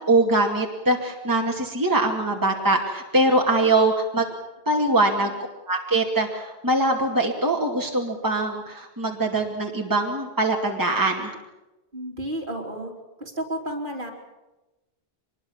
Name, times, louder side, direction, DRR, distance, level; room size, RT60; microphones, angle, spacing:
voice 1, 0.1-4.2 4.7-5.3 5.7-11.3, right 2 dB, 20° right, 1 dB, 2.4 m, -22 dB
voice 2, 5.0-5.3 11.9-12.9 13.2-14.1, right 1 dB, 50° right, 1 dB, 3.6 m, -32 dB
24.0 x 21.5 x 7.3 m, 1.0 s
omnidirectional pair, 1.1 m